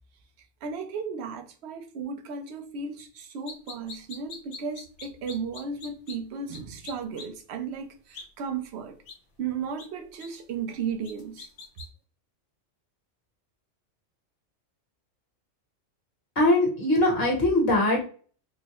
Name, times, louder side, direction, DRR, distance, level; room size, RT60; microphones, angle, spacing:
voice 1, 0.6-8.9 9.4-11.5, right 5 dB, 65° right, 0.8 m, -35 dB
sound 1, 3.5-6.2 6.5-6.6 6.8-7.3 8.1-8.2 9.1-9.2 9.8-9.9 10.2-10.3 11.0-11.9, left 4 dB, 75° left, 1.0 m, -42 dB
voice 2, 16.4-18.0, left 1 dB, 55° left, 1.2 m, -21 dB
3.8 x 2.1 x 2.9 m
omnidirectional pair, 1.3 m